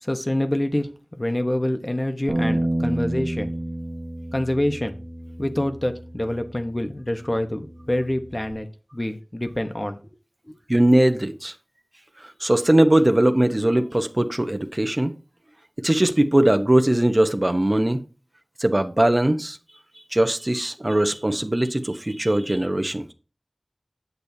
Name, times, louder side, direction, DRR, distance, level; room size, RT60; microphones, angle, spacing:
voice 1, 0.0-3.5 4.3-4.9 5.4-8.7 8.9-10.0, left 1 dB, 35° left, 1.0 m, -26 dB
Bass guitar, 2.3-8.5, right 1 dB, 80° right, 1.0 m, -30 dB
voice 2, 10.7-11.5 12.4-15.1 15.8-18.0 18.6-19.6 20.1-23.1, right 1 dB, 40° right, 0.9 m, -20 dB
8.6 x 8.2 x 2.8 m
wide cardioid pair, 45°, 0 cm